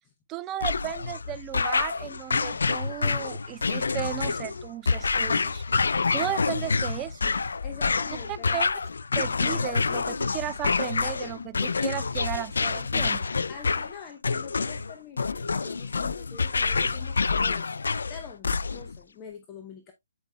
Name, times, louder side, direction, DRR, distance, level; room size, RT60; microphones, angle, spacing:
voice 1, 0.3-5.6 6.1-7.3 8.5-8.7 9.1-13.3, right 13 dB, 20° right, 0.4 m, -35 dB
sound 1, 0.6-19.0, left 4 dB, 75° left, 0.4 m, -27 dB
voice 2, 7.6-8.6 13.5-17.7 18.1-19.9, left 7 dB, 25° left, 0.8 m, -45 dB
8.0 x 5.4 x 2.3 m
figure-of-eight pair, 140°, 0 cm